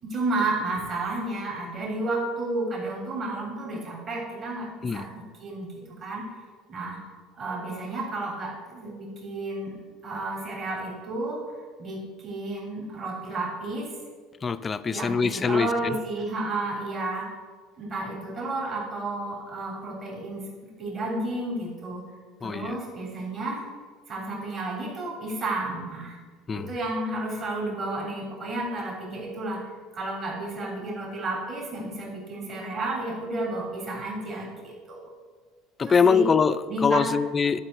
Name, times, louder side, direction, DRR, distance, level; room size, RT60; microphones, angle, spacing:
voice 1, 0.0-5.1 5.4-5.7 6.0-6.4 6.7-7.0 7.4-9.7 10.0-13.9 14.9-17.3 17.8-20.4 20.8-22.0 22.4-23.7 24.1-26.2 26.5-29.6 29.9-35.1 35.9-36.3 36.7-37.1, right 2 dB, 35° right, -3 dB, 3.3 m, -32 dB
voice 2, 14.4-16.0 22.4-22.8 26.5-26.7 35.8-37.6, left 5 dB, 25° left, 12 dB, 0.5 m, -23 dB
11.5 x 5.6 x 7.9 m, 1.5 s
cardioid pair, 130°, 0 cm